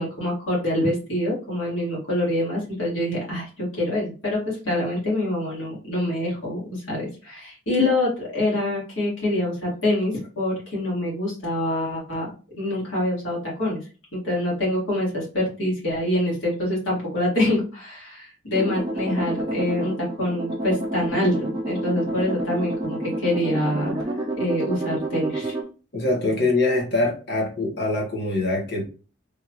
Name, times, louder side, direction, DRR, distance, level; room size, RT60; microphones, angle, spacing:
voice 1, 0.0-12.3 12.5-13.8 14.1-24.0 24.4-25.6, left 1 dB, 80° left, -6 dB, 1.8 m, -25 dB
sound 1, 18.5-25.6, right 1 dB, 20° right, 0.5 m, -29 dB
voice 2, 25.9-28.8, left 2 dB, 55° left, 0 dB, 1.2 m, -23 dB
3.5 x 2.3 x 2.9 m, 0.35 s
head